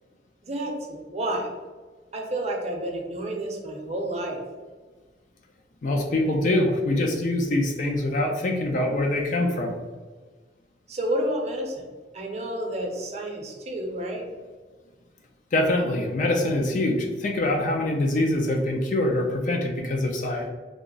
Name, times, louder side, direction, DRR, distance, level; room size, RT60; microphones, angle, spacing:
voice 1, 0.4-1.5 2.1-4.4 10.9-11.8 12.1-14.2, right 1 dB, 40° right, 0 dB, 0.6 m, -30 dB
voice 2, 5.8-9.7 15.5-20.5, left 1 dB, 45° left, 2 dB, 0.4 m, -24 dB
3.4 x 2.0 x 3.8 m, 1.4 s
head